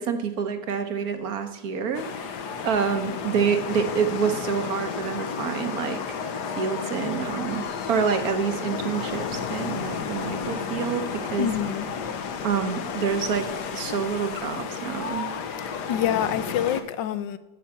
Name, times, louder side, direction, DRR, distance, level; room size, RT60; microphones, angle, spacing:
voice 1, 0.0-11.5 12.4-13.5 13.7-15.3, right 6 dB, 60° right, 8 dB, 1.3 m, -27 dB
sound 1, 1.9-16.8, left 6 dB, 70° left, 1.4 m, -32 dB
voice 2, 11.4-11.9 15.9-17.4, left 10 dB, 85° left, 13 dB, 1.4 m, -26 dB
8.6 x 6.9 x 7.2 m, 0.99 s
omnidirectional pair, 1.9 m